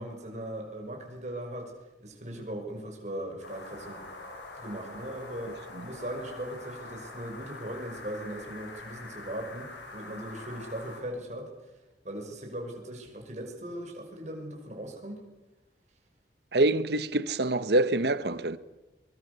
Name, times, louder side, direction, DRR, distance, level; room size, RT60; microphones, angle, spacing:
voice 1, 0.0-1.7 2.0-4.1 4.5-11.5 12.0-15.2, right 1 dB, 40° right, 5.8 m, -39 dB
sound 1, 3.4-11.0, left 2 dB, 85° left, 6.6 m, -45 dB
voice 2, 16.5-18.6, right 2 dB, 65° right, 1.0 m, -25 dB
24.0 x 23.0 x 6.9 m
head